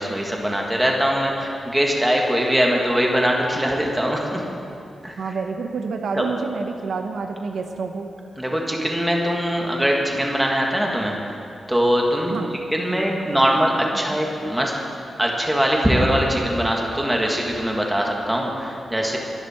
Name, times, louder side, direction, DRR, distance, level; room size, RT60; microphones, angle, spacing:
voice 1, 0.0-4.4 5.0-5.2 6.2-6.3 8.4-11.2 11.7-12.3 12.7-14.7 15.2-19.2, equal, 5° right, -1 dB, 1.7 m, -21 dB
voice 2, 5.2-8.1 12.3-13.5 13.9-14.2, right 4 dB, 70° right, 5 dB, 0.9 m, -29 dB
22.0 x 11.0 x 4.4 m, 2.6 s
wide cardioid pair, 170°, 0 cm